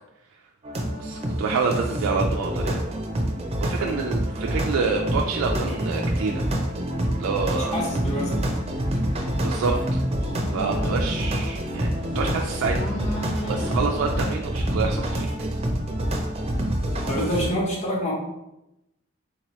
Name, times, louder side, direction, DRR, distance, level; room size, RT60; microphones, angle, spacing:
sound 1, 0.6-17.5, equal, 30° right, 0.5 m, -27 dB
voice 1, 1.0-2.9 3.6-6.5 7.2-7.8 9.4-10.0 10.5-12.9 13.5-15.5, right 4 dB, 85° right, 1 dB, 0.3 m, -27 dB
voice 2, 7.6-8.5 17.1-18.1, equal, 35° left, -3 dB, 1.0 m, -27 dB
sound 2, 8.0-14.3, equal, 60° left, 1.3 m, -36 dB
4.0 x 2.9 x 3.0 m, 0.90 s
head